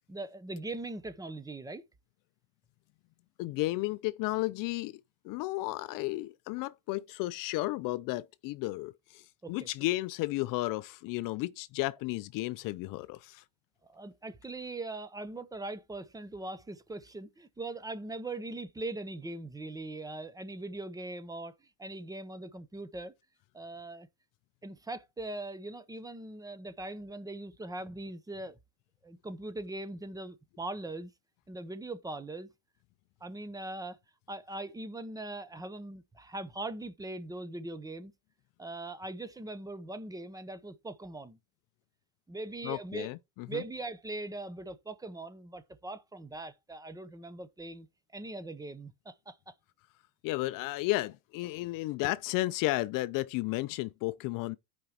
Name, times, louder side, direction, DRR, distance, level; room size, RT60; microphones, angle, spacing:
voice 1, 0.1-1.8 9.4-9.5 13.8-23.1 23.5-24.1 24.6-28.6 29.0-31.1 31.5-32.5 33.2-34.0 34.3-38.1 38.6-41.4 42.3-43.1 43.5-47.9 48.1-49.5, right 2 dB, 10° right, 0.6 m, -41 dB
voice 2, 3.4-13.4 42.6-43.6 50.2-54.6, left 19 dB, 55° left, 0.4 m, -33 dB
14.0 x 5.1 x 2.9 m
supercardioid pair, 120°, 42 cm